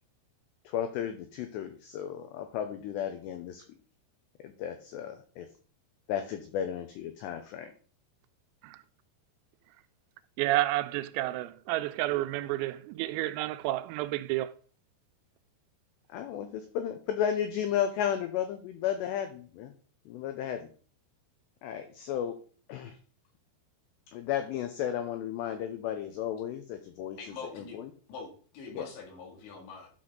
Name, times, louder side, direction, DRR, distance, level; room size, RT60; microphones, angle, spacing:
voice 1, 0.7-3.6 4.4-5.5 6.1-7.7 16.1-19.7 20.1-20.7 21.6-22.4 22.7-23.0 24.1-27.2 27.5-27.9 28.7-28.9, left 9 dB, 85° left, 2.4 m, -34 dB
voice 2, 10.4-14.5, right 16 dB, 90° right, 3.3 m, -30 dB
voice 3, 27.2-27.8 28.1-29.9, left 4 dB, 65° left, 4.4 m, -44 dB
12.5 x 6.0 x 3.8 m
omnidirectional pair, 5.9 m